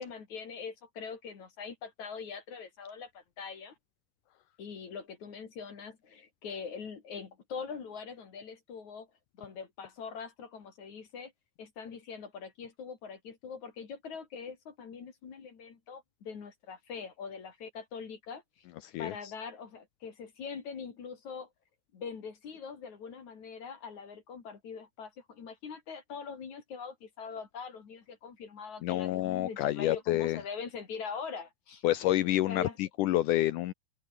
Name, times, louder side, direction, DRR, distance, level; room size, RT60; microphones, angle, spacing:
voice 1, 0.0-3.7 4.6-9.1 9.4-11.3 11.6-18.7 19.0-21.5 21.9-31.8 32.5-32.8, left 6 dB, 50° left, 4.0 m, -43 dB
voice 2, 18.8-19.1 28.8-30.4 31.8-33.7, left 15 dB, 85° left, 1.8 m, -28 dB
omnidirectional pair, 4.5 m